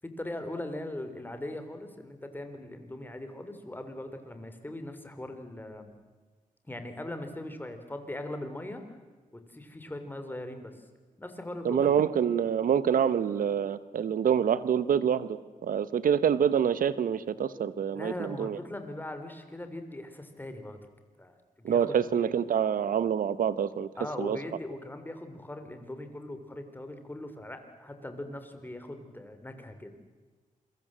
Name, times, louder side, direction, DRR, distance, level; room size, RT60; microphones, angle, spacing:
voice 1, 0.2-5.9 6.6-9.0 9.3-10.8 11.2-12.0 17.9-20.8 21.2-22.0 24.0-29.9, left 1 dB, 15° left, 7 dB, 3.4 m, -40 dB
voice 2, 11.6-15.3 15.6-18.6 21.6-23.9 24.2-24.4, right 8 dB, 85° right, 15 dB, 1.1 m, -26 dB
28.0 x 23.5 x 7.6 m, 1.3 s
wide cardioid pair, 110°, 14 cm